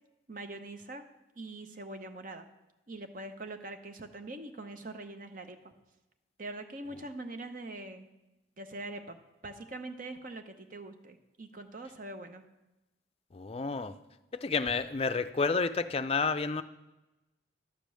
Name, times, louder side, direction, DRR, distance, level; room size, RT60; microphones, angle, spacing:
voice 1, 0.3-1.0 1.4-2.5 2.9-5.7 6.4-8.1 8.6-9.2 9.4-12.4, right 2 dB, 45° right, 7 dB, 0.8 m, -43 dB
voice 2, 13.3-13.9 14.3-16.6, left 4 dB, 30° left, 10 dB, 0.4 m, -30 dB
11.5 x 5.2 x 7.5 m, 1.0 s
head